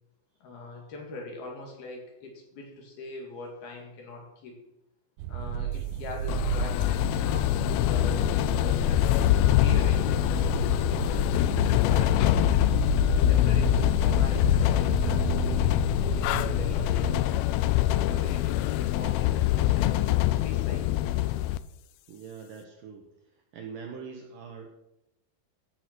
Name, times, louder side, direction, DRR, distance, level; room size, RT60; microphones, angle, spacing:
voice 1, 0.4-4.6 5.3-9.1 9.6-12.8 13.3-17.4 18.0-21.1, left 3 dB, 65° left, 0 dB, 4.2 m, -42 dB
sound 1, 5.2-17.2, right 9 dB, 85° right, 3.0 m, -33 dB
sound 2, 6.3-21.6, left 15 dB, 90° left, 2.1 m, -24 dB
voice 2, 22.1-23.1 23.5-24.7, right 6 dB, 70° right, 2 dB, 2.2 m, -42 dB
14.5 x 6.6 x 6.1 m, 0.86 s
omnidirectional pair, 4.9 m